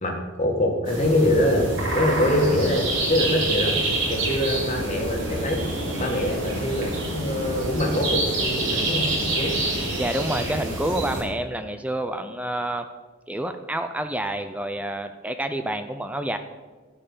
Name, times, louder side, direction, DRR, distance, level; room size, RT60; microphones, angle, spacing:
voice 1, 0.0-3.8 4.1-5.6 6.0-9.6, left 1 dB, 35° left, 1 dB, 1.8 m, -24 dB
sound 1, 0.9-11.2, right 2 dB, 60° right, 3.5 m, -27 dB
voice 2, 10.0-12.9 13.3-16.4, right 1 dB, 5° right, 8 dB, 0.5 m, -28 dB
12.5 x 5.6 x 8.6 m, 1.3 s
head